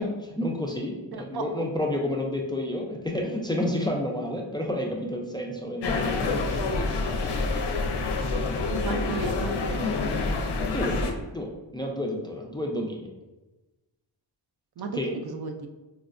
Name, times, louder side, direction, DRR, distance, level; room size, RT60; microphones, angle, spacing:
voice 1, 0.0-6.4 10.7-11.0 11.3-13.1 14.9-15.1, left 1 dB, 10° left, 1 dB, 0.3 m, -30 dB
voice 2, 1.1-1.7 8.7-10.1 14.8-15.7, right 4 dB, 55° right, 5 dB, 0.5 m, -34 dB
sound 1, 5.8-11.1, left 3 dB, 60° left, 0.6 m, -27 dB
4.6 x 2.1 x 2.4 m, 1.1 s
cardioid pair, 75°, 46 cm